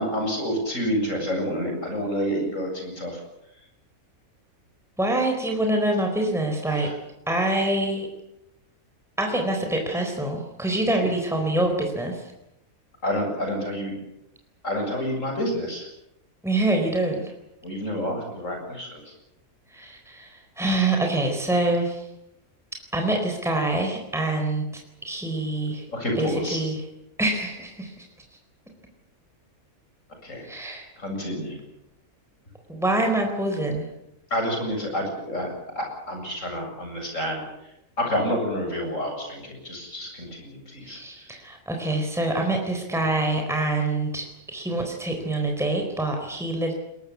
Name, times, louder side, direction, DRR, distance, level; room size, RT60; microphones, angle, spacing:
voice 1, 0.0-3.2 6.7-6.9 13.0-13.9 14.6-15.9 17.6-19.0 25.9-26.6 30.2-30.4 31.0-31.6 34.3-35.5 35.7-37.4 38.0-41.0, equal, 60° left, 2 dB, 8.1 m, -28 dB
voice 2, 5.0-6.9 7.3-8.1 9.2-12.2 16.4-17.3 19.7-22.0 22.9-24.7 25.0-25.8 26.2-26.8 27.2-28.0 30.4-30.9 32.7-33.9 40.8-46.7, right 2 dB, ahead, 2 dB, 4.2 m, -25 dB
22.5 x 21.5 x 8.5 m, 0.86 s
omnidirectional pair, 1.5 m